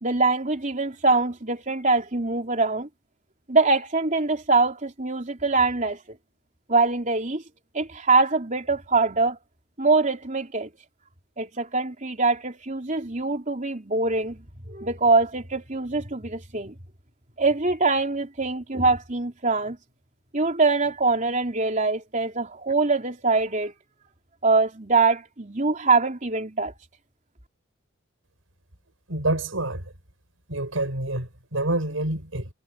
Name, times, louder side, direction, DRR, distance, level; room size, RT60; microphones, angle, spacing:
voice 1, 0.0-2.9 3.5-6.0 6.7-7.4 7.7-9.4 9.8-10.7 11.4-14.4 14.7-16.7 17.4-19.8 20.3-23.7 24.4-26.7, right 3 dB, 40° right, 3.8 m, -23 dB
voice 2, 29.1-29.8 30.5-32.5, right 2 dB, 85° right, 5.5 m, -27 dB
head